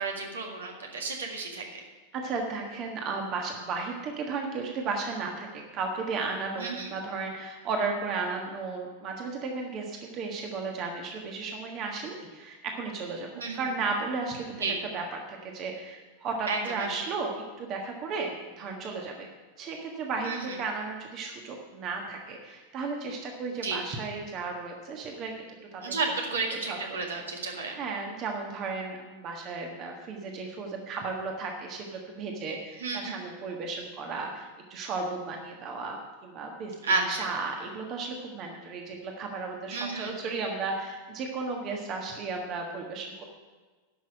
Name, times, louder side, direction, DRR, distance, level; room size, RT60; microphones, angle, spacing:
voice 1, 0.0-1.8 6.6-6.9 13.4-13.6 14.6-14.8 16.5-16.9 20.2-20.4 23.6-23.8 25.8-27.8 32.8-33.2 36.8-37.3 39.7-40.2, right 3 dB, 70° right, 1 dB, 1.9 m, -31 dB
voice 2, 2.1-17.3 17.6-19.3 19.6-25.4 25.7-25.9 26.6-26.8 27.1-43.2, right 4 dB, 35° right, 2 dB, 1.5 m, -34 dB
11.0 x 6.1 x 8.7 m, 1.3 s
figure-of-eight pair, 90°, 0 cm